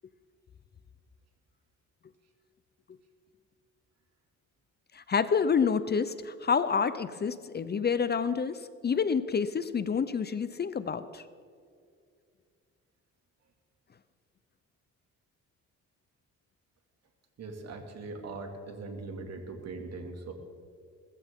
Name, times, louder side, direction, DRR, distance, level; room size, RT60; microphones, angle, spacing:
voice 1, 4.9-11.2, left 6 dB, 35° left, 14 dB, 0.6 m, -28 dB
voice 2, 17.4-20.3, right 3 dB, 60° right, 4 dB, 2.4 m, -40 dB
22.0 x 14.0 x 3.7 m, 2.2 s
cardioid pair, 90°, 30 cm